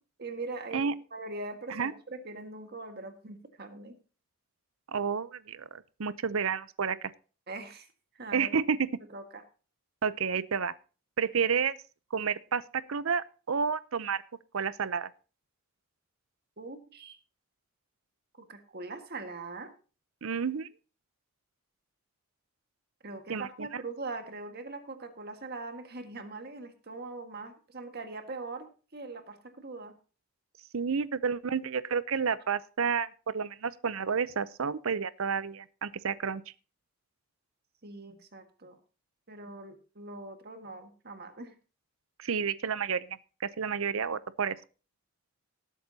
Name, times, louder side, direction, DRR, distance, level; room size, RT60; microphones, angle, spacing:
voice 1, 0.2-4.0 7.5-7.9 8.1-8.5 9.1-9.4 16.6-17.2 18.4-19.7 23.0-30.0 37.8-38.8 39.3-41.5, right 3 dB, 45° right, 1.7 m, -42 dB
voice 2, 4.9-7.0 8.3-8.9 10.0-10.7 11.2-11.8 12.1-14.2 14.5-15.1 20.2-20.7 23.3-23.7 30.7-36.4 42.2-44.6, right 6 dB, 70° right, 0.6 m, -30 dB
19.5 x 8.4 x 2.8 m
head